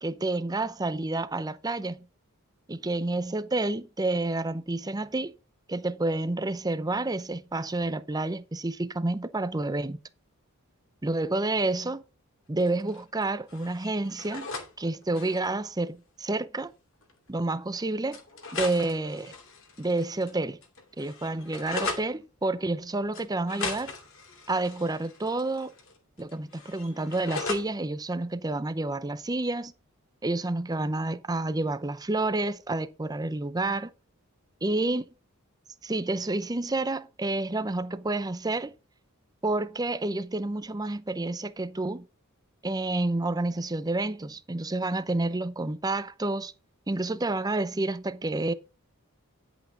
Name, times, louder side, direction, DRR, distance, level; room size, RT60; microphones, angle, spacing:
voice 1, 0.0-2.0 2.7-5.3 5.7-10.0 11.0-12.0 12.5-14.5 14.8-16.7 17.3-18.2 18.5-19.3 19.8-20.6 21.0-23.9 24.5-25.7 26.2-29.7 30.2-33.9 34.6-35.1 35.8-38.7 39.4-42.0 42.6-46.5 46.9-48.5, right 2 dB, 15° right, 0.6 m, -29 dB
sound 1, 12.6-13.2 13.5-14.7 15.0-15.5 16.6-16.7 17.0-17.1 18.1-20.3 20.6-22.1 23.1-25.9 26.2-27.7, left 4 dB, 60° left, 2.5 m, -38 dB
10.5 x 8.1 x 3.8 m
head